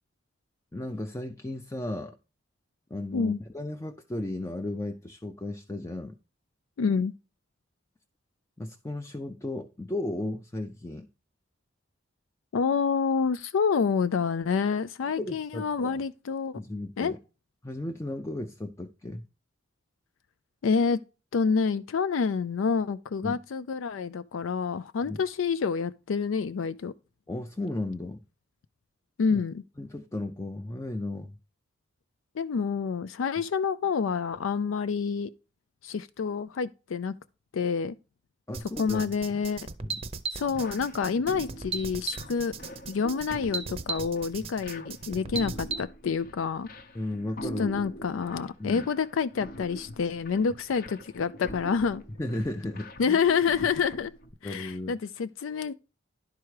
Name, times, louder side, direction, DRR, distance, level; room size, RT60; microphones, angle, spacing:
voice 1, 0.7-2.2 2.9-6.2 8.6-11.1 15.2-16.0 16.6-17.2 17.6-19.2 23.2-23.4 25.1-25.2 27.3-28.2 29.3-29.4 29.8-31.4 38.5-39.1 39.8-40.0 44.4-44.5 46.9-47.7 48.6-48.9 52.2-53.2 54.4-55.0, left 1 dB, 15° left, 0.4 m, -35 dB
voice 2, 6.8-7.1 12.5-16.6 17.0-17.1 20.6-21.0 21.3-26.9 29.2-29.6 32.3-35.3 35.8-37.1 37.5-38.0 38.8-39.7 40.3-42.5 42.9-46.7 47.4-52.0 53.0-54.1 54.4-55.7, left 5 dB, 85° left, 0.4 m, -28 dB
sound 1, 38.5-45.8, right 4 dB, 30° right, 0.6 m, -36 dB
sound 2, 40.5-54.3, equal, 50° left, 0.8 m, -44 dB
11.0 x 4.7 x 4.7 m
head